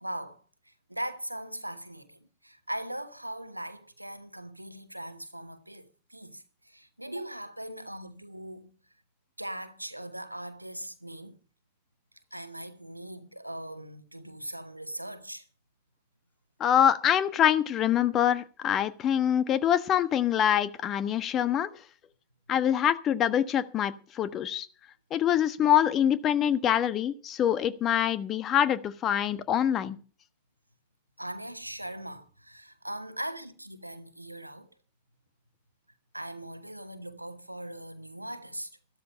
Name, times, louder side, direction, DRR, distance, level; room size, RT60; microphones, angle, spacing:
voice 1, 0.0-8.7 9.4-11.4 12.3-15.5 31.2-34.7 36.1-38.7, right 1 dB, 90° right, 1.1 m, -40 dB
voice 2, 16.6-21.7 22.5-24.7 25.1-30.0, left 10 dB, 35° left, 1.3 m, -25 dB
13.5 x 13.0 x 5.4 m
figure-of-eight pair, 85°, 0 cm